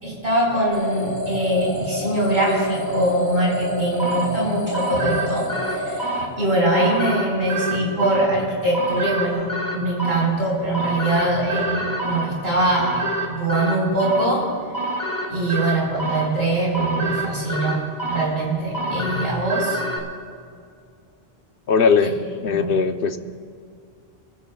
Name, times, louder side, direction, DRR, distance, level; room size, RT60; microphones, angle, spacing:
voice 1, 0.0-9.5 9.7-14.5 15.3-19.8 22.0-22.1 22.4-22.7, right 1 dB, 75° right, -3 dB, 5.1 m, -22 dB
sound 1, 0.7-6.9, equal, 85° left, 2.6 m, -29 dB
sound 2, 4.0-20.0, right 1 dB, 20° left, 1.8 m, -28 dB
voice 2, 21.7-22.1 22.4-23.2, left 5 dB, 65° left, 8 dB, 1.0 m, -19 dB
28.5 x 15.5 x 2.3 m, 2.3 s
omnidirectional pair, 1.0 m